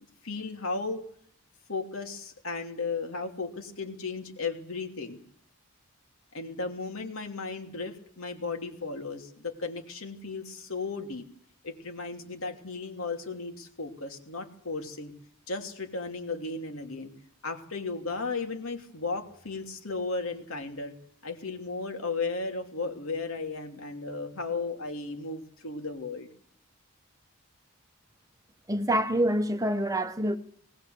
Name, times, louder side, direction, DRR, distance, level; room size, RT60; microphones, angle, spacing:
voice 1, 0.2-1.0 1.7-5.2 6.3-11.2 11.6-15.1 15.5-17.1 17.4-20.9 21.2-26.3, left 3 dB, 70° left, 2.8 m, -35 dB
voice 2, 28.7-30.4, right 1 dB, 15° right, 1.0 m, -26 dB
19.5 x 18.5 x 7.8 m
head